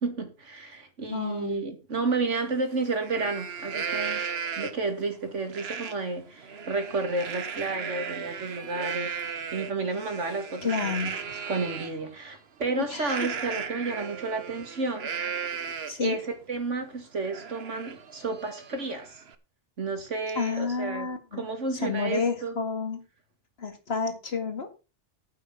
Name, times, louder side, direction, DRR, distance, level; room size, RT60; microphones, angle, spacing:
voice 1, 0.0-4.2 4.6-9.2 9.5-10.9 11.5-15.1 16.0-19.2 19.8-22.6, right 3 dB, 90° right, 2.6 m, -31 dB
voice 2, 1.1-1.6 10.6-11.2 12.8-13.3 15.9-16.2 20.4-21.4 21.7-23.0 23.6-24.7, left 5 dB, 60° left, 2.2 m, -30 dB
Livestock farm animals working animals, 2.3-2.4 2.9-4.9 5.5-5.9 6.3-11.9 13.0-16.1 16.5-16.6 17.0-19.3, right 6 dB, 60° right, 1.3 m, -36 dB
9.2 x 8.8 x 5.7 m
omnidirectional pair, 1.2 m